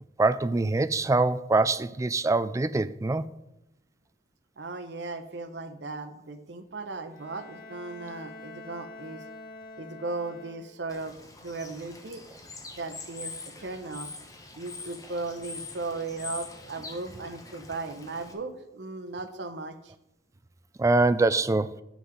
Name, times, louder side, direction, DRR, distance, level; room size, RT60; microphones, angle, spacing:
voice 1, 0.2-3.2 20.8-21.8, right 3 dB, 20° right, 0.3 m, -24 dB
voice 2, 4.6-9.2 9.8-11.1 11.4-12.2 12.7-14.1 14.6-19.9, right 3 dB, 75° right, 1.0 m, -37 dB
Bowed string instrument, 7.1-11.0, left 2 dB, 50° left, 1.9 m, -46 dB
Bird / Water, 10.9-18.3, left 3 dB, 20° left, 1.1 m, -44 dB
9.5 x 6.3 x 5.1 m
head